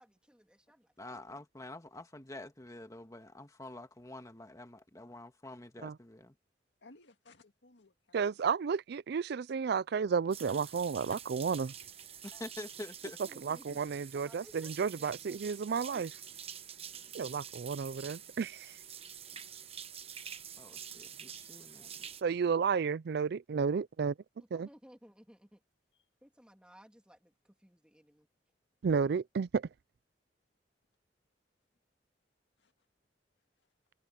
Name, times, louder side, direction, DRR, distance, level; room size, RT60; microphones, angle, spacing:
voice 1, 0.0-1.4 13.2-13.8 14.1-16.0 24.5-25.6 26.2-28.3, equal, 5° right, 2.6 m, -58 dB
voice 2, 1.0-6.3 12.2-13.2 20.6-22.1, left 2 dB, 20° left, 1.7 m, -47 dB
voice 3, 6.8-8.5 11.0-11.3 25.9-26.1 32.6-32.7, left 3 dB, 80° left, 2.0 m, -59 dB
voice 4, 8.1-11.7 13.4-16.1 17.1-18.7 22.2-24.1 24.5-24.7 28.8-29.7, right 6 dB, 60° right, 0.4 m, -32 dB
sound 1, 10.3-22.2, right 8 dB, 35° right, 1.0 m, -47 dB
head